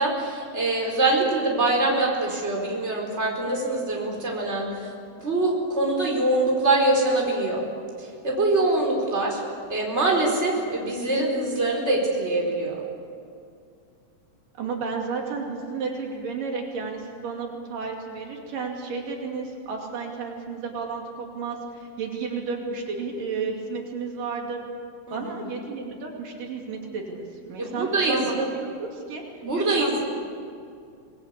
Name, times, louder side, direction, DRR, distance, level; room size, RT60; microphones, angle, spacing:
voice 1, 0.0-4.9 5.2-7.6 8.0-9.4 9.7-12.8 25.1-25.3 27.6-28.2 29.4-29.9, right 2 dB, 20° right, -1 dB, 4.8 m, -24 dB
voice 2, 14.6-24.6 25.1-29.2 29.6-30.0, right 4 dB, 80° right, 0 dB, 4.3 m, -32 dB
26.0 x 20.5 x 8.4 m, 2.3 s
omnidirectional pair, 3.8 m